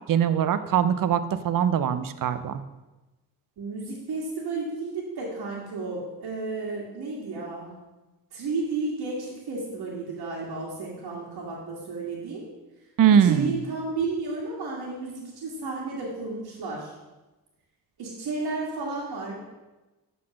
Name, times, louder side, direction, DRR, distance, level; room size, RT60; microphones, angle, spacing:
voice 1, 0.1-2.6 13.0-13.5, right 8 dB, 55° right, 13 dB, 0.6 m, -22 dB
voice 2, 3.6-7.7 8.3-12.5 13.2-16.9 18.0-19.5, right 3 dB, 75° right, -6 dB, 1.8 m, -32 dB
7.6 x 4.1 x 6.2 m, 1.1 s
cardioid pair, 80°, 38 cm